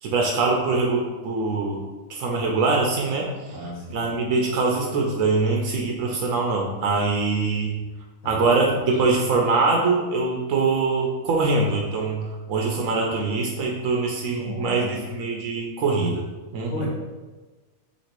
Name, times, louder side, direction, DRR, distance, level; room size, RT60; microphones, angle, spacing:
voice 1, 0.0-1.8 2.1-3.3 3.9-7.8 8.2-16.3 16.5-16.7, right 3 dB, 75° right, -1 dB, 1.0 m, -23 dB
voice 2, 3.4-4.1 8.2-9.0 14.3-15.1 16.7-16.9, left 1 dB, 85° left, -5 dB, 1.3 m, -35 dB
3.0 x 2.8 x 4.3 m, 1.3 s
omnidirectional pair, 1.4 m